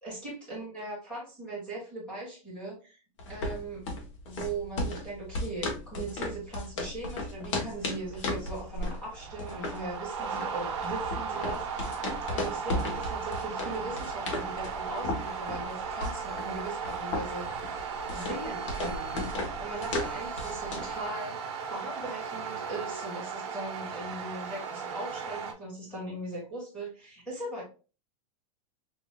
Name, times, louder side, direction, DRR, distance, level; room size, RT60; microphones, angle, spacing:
voice 1, 0.0-3.0 3.3-3.8 4.2-12.0 12.3-17.5 18.1-21.4 21.7-27.6, right 2 dB, 5° left, -5 dB, 1.9 m, -39 dB
sound 1, 3.2-21.0, left 2 dB, 55° left, 1.1 m, -36 dB
sound 2, 7.7-25.5, right 6 dB, 50° right, 1.0 m, -36 dB
6.2 x 2.7 x 2.2 m, 0.33 s
supercardioid pair, 180°, 19 cm